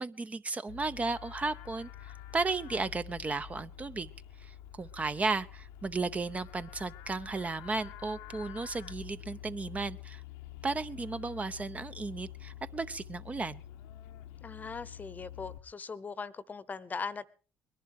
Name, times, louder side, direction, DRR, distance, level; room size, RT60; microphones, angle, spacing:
voice 1, 0.0-4.1 4.4-10.2 10.6-13.6, right 3 dB, 25° right, 12 dB, 0.7 m, -34 dB
Livestock farm animals working animals, 0.7-15.6, left 11 dB, 80° left, 0.9 m, -48 dB
voice 2, 14.4-17.3, left 5 dB, 30° left, 19 dB, 0.9 m, -40 dB
21.0 x 11.0 x 4.7 m, 0.37 s
hypercardioid pair, 60°, 5 cm